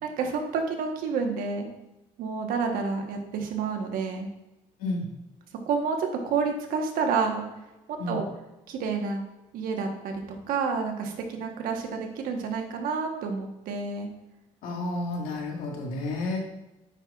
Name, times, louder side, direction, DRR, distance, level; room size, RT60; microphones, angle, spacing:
voice 1, 0.0-1.7 2.2-4.3 5.7-7.4 7.9-8.3 8.7-9.2 9.5-10.2 10.5-14.1, right 5 dB, 75° right, 3 dB, 1.2 m, -29 dB
voice 2, 14.6-16.4, left 2 dB, 85° left, -1 dB, 1.7 m, -31 dB
8.9 x 5.9 x 2.4 m, 0.97 s
cardioid pair, 110°, 14 cm